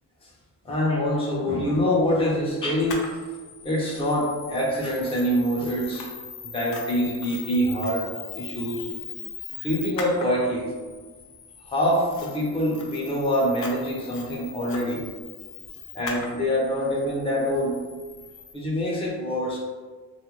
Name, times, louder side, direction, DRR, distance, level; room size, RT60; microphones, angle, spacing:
voice 1, 0.6-3.1 3.6-6.1 6.5-8.1 8.4-8.9 9.6-10.7 11.7-15.0 15.9-17.8 18.5-19.6, equal, 20° left, -4 dB, 0.6 m, -25 dB
Camera, 2.9-18.5, left 5 dB, 85° left, 0.5 m, -40 dB
2.4 x 2.1 x 2.9 m, 1.4 s
cardioid pair, 135°, 30 cm